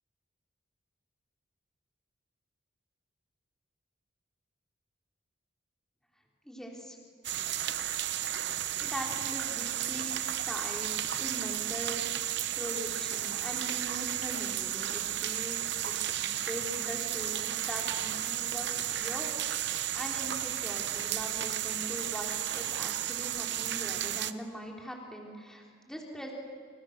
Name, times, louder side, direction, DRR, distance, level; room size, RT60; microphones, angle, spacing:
voice 1, 6.5-7.0 8.8-10.2 10.5-12.0 12.5-26.3, equal, 5° left, -1 dB, 3.8 m, -41 dB
sound 1, 7.2-24.3, right 12 dB, 60° right, 0.9 m, -33 dB
29.0 x 28.5 x 6.8 m, 2.2 s
head